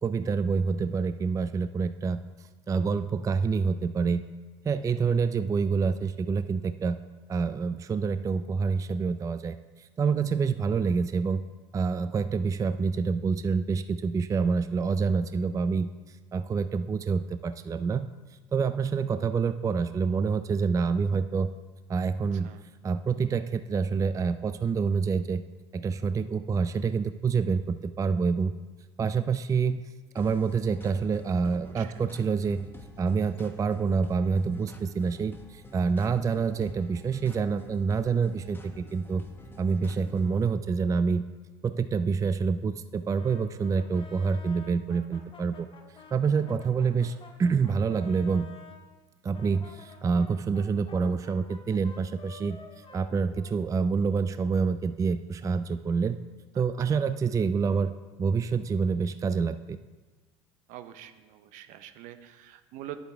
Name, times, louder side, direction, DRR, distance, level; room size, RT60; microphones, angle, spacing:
voice 1, 0.0-2.2 2.7-4.2 4.6-7.0 7.3-11.4 11.7-18.1 18.5-21.5 21.9-22.5 22.8-25.4 25.7-28.5 29.0-29.8 30.1-32.7 33.0-39.2 39.6-41.2 41.6-45.7 46.1-48.5 49.2-52.6 52.9-56.2 56.6-57.9 58.2-59.8, right 5 dB, 25° right, 11 dB, 0.4 m, -27 dB
sound 1, 30.2-40.5, left 1 dB, 15° left, 1.3 m, -49 dB
Brass instrument, 43.2-48.8 49.3-54.1, left 4 dB, 40° left, 1.7 m, -50 dB
voice 2, 60.7-63.0, right 12 dB, 65° right, 10 dB, 0.7 m, -45 dB
10.0 x 8.0 x 3.4 m, 1.2 s
hypercardioid pair, 70°, 14 cm